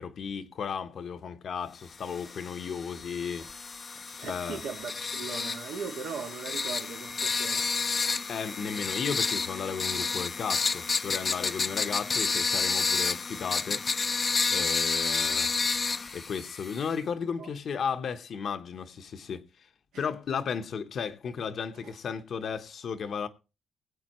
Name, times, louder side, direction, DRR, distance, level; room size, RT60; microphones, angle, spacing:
voice 1, 0.0-3.5 4.2-4.6 8.3-13.8 14.5-15.5 16.1-19.4 20.0-23.3, left 6 dB, 55° left, 1.0 m, -34 dB
sound 1, 2.0-16.9, left 4 dB, 35° left, 0.6 m, -30 dB
voice 2, 4.1-7.7 14.5-14.7 17.4-17.5 19.9-20.0 21.8-21.9, right 6 dB, 85° right, 1.8 m, -39 dB
20.5 x 8.4 x 3.0 m
cardioid pair, 90°, 0 cm